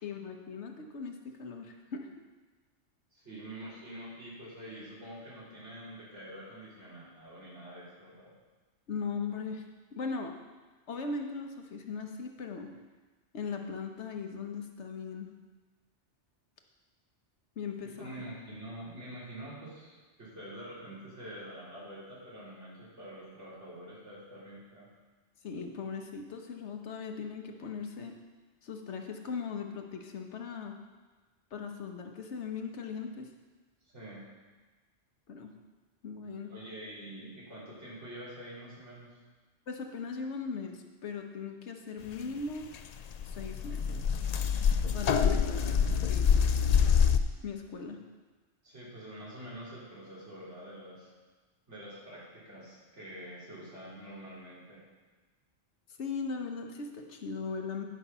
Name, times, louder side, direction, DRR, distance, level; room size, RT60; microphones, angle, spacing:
voice 1, 0.0-2.1 8.9-9.6 9.9-10.3 10.9-12.7 13.3-15.3 17.6-18.2 25.4-28.1 28.6-30.8 31.5-33.3 35.3-35.5 36.0-36.5 39.7-42.7 43.2-44.0 44.9-45.6 46.1-46.4 47.4-48.0 56.0-57.9, left 5 dB, 75° left, 4 dB, 1.2 m, -39 dB
voice 2, 3.1-8.3 17.8-24.9 33.9-34.2 36.5-39.2 45.5-45.7 48.6-51.1 51.7-54.8, right 1 dB, 80° right, -8 dB, 3.8 m, -46 dB
sound 1, 42.7-42.8 43.0-47.2, left 7 dB, 60° left, 0.4 m, -26 dB
10.5 x 5.5 x 5.5 m, 1.3 s
omnidirectional pair, 1.2 m